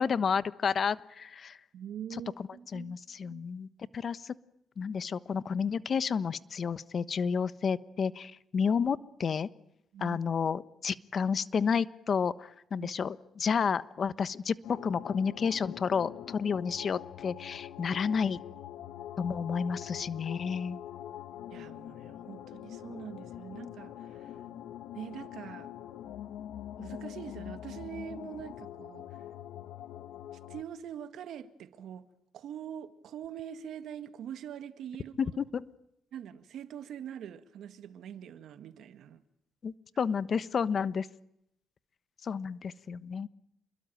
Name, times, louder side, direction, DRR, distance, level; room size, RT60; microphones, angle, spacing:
voice 1, 0.0-1.6 2.7-3.7 3.9-4.3 4.8-9.5 10.0-18.4 19.2-20.8 35.2-35.7 39.6-41.1 42.2-43.3, left 6 dB, 50° left, 1.2 m, -31 dB
voice 2, 1.7-3.0 3.2-3.4 9.9-10.2 12.8-12.9 21.5-24.4 24.9-25.7 26.8-29.2 30.3-32.1 32.3-35.4 36.1-39.2, right 9 dB, 75° right, 1.7 m, -44 dB
sound 1, 14.6-30.6, left 11 dB, 80° left, 1.4 m, -44 dB
29.0 x 22.0 x 9.1 m
cardioid pair, 90°, 0 cm